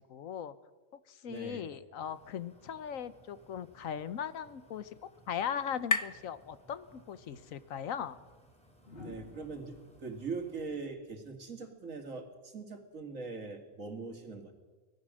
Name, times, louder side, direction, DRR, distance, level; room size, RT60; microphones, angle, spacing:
voice 1, 0.1-0.5 1.1-4.9 5.3-8.2, left 8 dB, 85° left, 15 dB, 1.3 m, -39 dB
voice 2, 1.2-1.7 9.0-9.8 10.0-14.5, right 4 dB, 75° right, 5 dB, 2.7 m, -41 dB
sound 1, 2.0-10.6, right 2 dB, 5° left, 3.4 m, -63 dB
sound 2, 3.6-7.3, left 3 dB, 25° left, 0.4 m, -39 dB
sound 3, 7.4-7.5 8.8-11.9 13.4-13.7, left 3 dB, 45° left, 3.0 m, -53 dB
24.5 x 18.0 x 6.3 m, 1.3 s
omnidirectional pair, 1.4 m